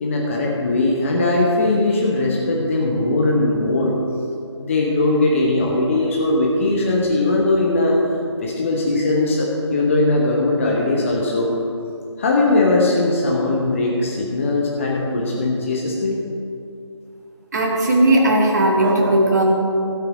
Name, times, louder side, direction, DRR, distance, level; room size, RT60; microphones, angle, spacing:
voice 1, 0.0-3.9 4.6-8.0 8.4-11.5 12.2-16.2, left 2 dB, 25° left, -2 dB, 1.2 m, -19 dB
voice 2, 17.5-19.4, right 1 dB, 35° right, -1 dB, 1.8 m, -16 dB
13.0 x 8.8 x 4.9 m, 2.5 s
figure-of-eight pair, 155°, 15 cm